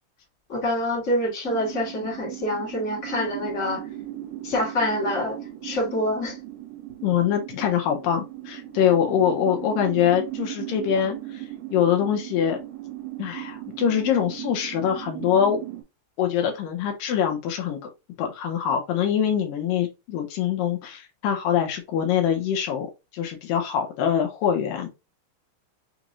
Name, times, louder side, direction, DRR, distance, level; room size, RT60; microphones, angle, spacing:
voice 1, 0.5-3.8 4.4-5.4 5.6-6.4, left 1 dB, 35° left, 1.3 m, -26 dB
sound 1, 1.4-15.8, right 15 dB, 75° right, 2.9 m, -37 dB
voice 2, 7.0-11.5 11.7-12.6 13.2-15.6 16.2-17.9 18.2-22.9 23.1-24.9, left 9 dB, 85° left, 2.0 m, -24 dB
6.3 x 3.0 x 2.5 m
omnidirectional pair, 4.9 m